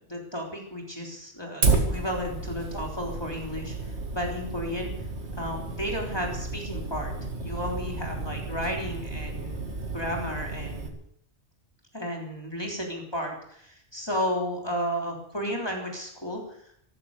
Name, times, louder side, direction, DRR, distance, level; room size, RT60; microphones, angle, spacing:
voice 1, 0.1-4.9 5.4-7.1 7.4-9.7 9.9-10.9 11.9-16.4, equal, 25° left, 0 dB, 3.5 m, -33 dB
Fire, 1.6-10.9, right 3 dB, 85° right, 2.5 m, -31 dB
15.0 x 13.5 x 6.7 m, 0.67 s
omnidirectional pair, 1.1 m